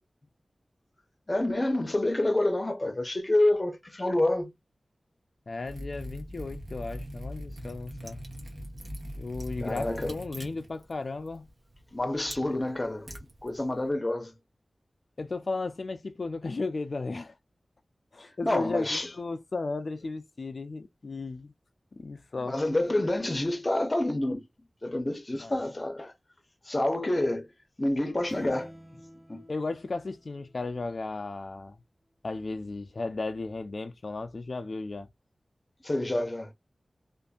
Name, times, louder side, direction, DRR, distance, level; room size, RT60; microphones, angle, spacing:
voice 1, 1.3-4.5 9.6-10.2 11.9-13.1 13.4-14.3 18.2-19.1 22.4-24.5 24.8-26.1 26.7-27.5 27.8-28.7 29.3-29.4 35.8-36.5, left 1 dB, 30° left, 0.7 m, -28 dB
voice 2, 5.5-8.2 9.2-11.5 12.4-12.6 15.2-17.3 18.1-21.5 22.0-22.6 25.4-25.5 29.5-31.8 32.2-35.1, left 3 dB, 60° left, 0.4 m, -35 dB
Liquid, 5.6-13.9, equal, 50° right, 1.1 m, -42 dB
sound 1, 28.3-30.9, equal, ahead, 0.7 m, -50 dB
2.6 x 2.5 x 2.3 m
wide cardioid pair, 70°, 0 cm